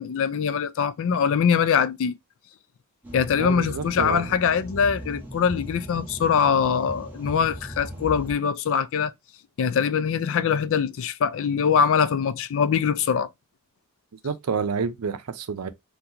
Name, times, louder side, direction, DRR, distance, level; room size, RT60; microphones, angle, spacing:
voice 1, 0.0-2.2 3.1-9.1 9.6-13.3, left 7 dB, 65° left, 0.4 m, -23 dB
sound 1, 3.0-8.3, equal, 10° right, 1.3 m, -38 dB
voice 2, 3.3-4.3 14.2-15.7, right 5 dB, 90° right, 0.5 m, -29 dB
3.8 x 2.2 x 2.8 m
head